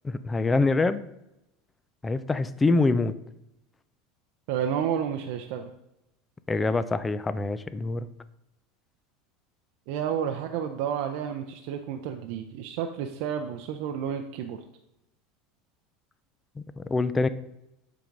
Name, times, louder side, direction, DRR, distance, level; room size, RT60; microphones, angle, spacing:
voice 1, 0.0-1.0 2.0-3.1 6.5-8.1 16.8-17.3, left 3 dB, 15° left, 14 dB, 0.3 m, -25 dB
voice 2, 4.5-5.7 9.9-14.6, right 8 dB, 65° right, 5 dB, 0.6 m, -31 dB
7.4 x 3.8 x 5.3 m, 0.87 s
supercardioid pair, 140°, 0 cm